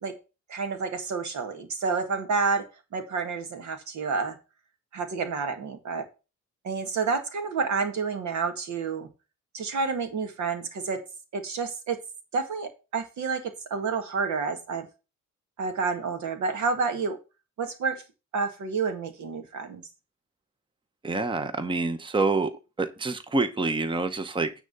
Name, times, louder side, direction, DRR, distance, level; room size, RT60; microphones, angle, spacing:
voice 1, 0.5-2.6 2.9-4.4 4.9-6.0 6.6-9.1 9.5-11.0 11.3-12.0 12.3-14.9 15.6-17.2 17.6-18.0 18.3-19.8, right 4 dB, 70° right, 7 dB, 1.9 m, -29 dB
voice 2, 21.0-22.5 22.8-24.5, right 3 dB, 15° right, 10 dB, 0.9 m, -27 dB
9.4 x 3.8 x 6.7 m, 0.30 s
cardioid pair, 90°, 30 cm